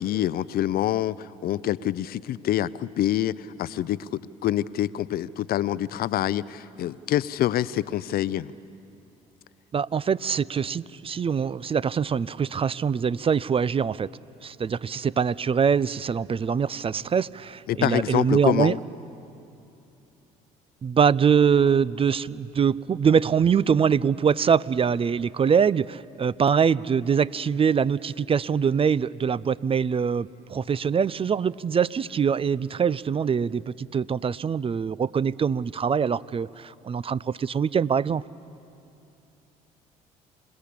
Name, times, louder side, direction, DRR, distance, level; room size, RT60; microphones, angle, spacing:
voice 1, 0.0-4.1 4.4-8.5 17.7-18.8, left 12 dB, 55° left, 18 dB, 0.6 m, -26 dB
voice 2, 9.7-14.1 14.4-18.7 20.8-38.2, right 7 dB, 30° right, 20 dB, 0.5 m, -23 dB
27.0 x 18.0 x 8.6 m, 2.8 s
hypercardioid pair, 60°, 18 cm